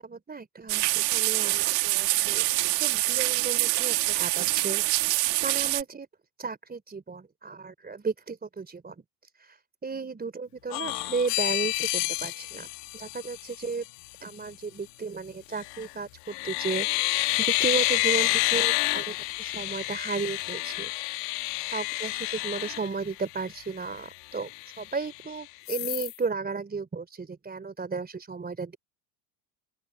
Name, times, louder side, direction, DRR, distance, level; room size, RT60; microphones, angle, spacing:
voice 1, 0.0-5.1 5.4-6.1 6.4-9.0 9.8-13.9 14.2-17.2 17.5-20.9 21.7-24.5 24.8-28.8, right 4 dB, 20° right, 3.5 m, -34 dB
sound 1, 0.7-5.8, right 21 dB, 85° right, 1.4 m, -25 dB
sound 2, 10.7-13.7 15.5-15.9 16.3-23.5 24.0-24.1 24.4-25.2 25.7-26.2, left 25 dB, 75° left, 1.5 m, -29 dB
open air
supercardioid pair, 95°, 47 cm